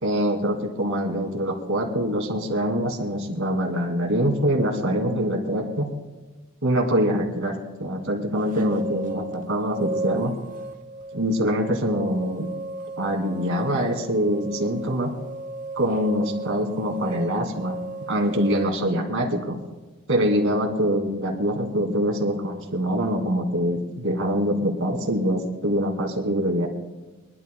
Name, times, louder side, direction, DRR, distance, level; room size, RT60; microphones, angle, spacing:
voice 1, 0.0-5.9 6.6-7.5 7.8-10.3 11.1-12.5 13.0-15.1 15.8-17.8 18.1-19.6 20.1-26.7, equal, 60° right, 2 dB, 2.5 m, -24 dB
sound 1, 8.3-18.7, right 3 dB, 35° right, 0.8 m, -35 dB
24.5 x 12.0 x 2.3 m, 1.2 s
head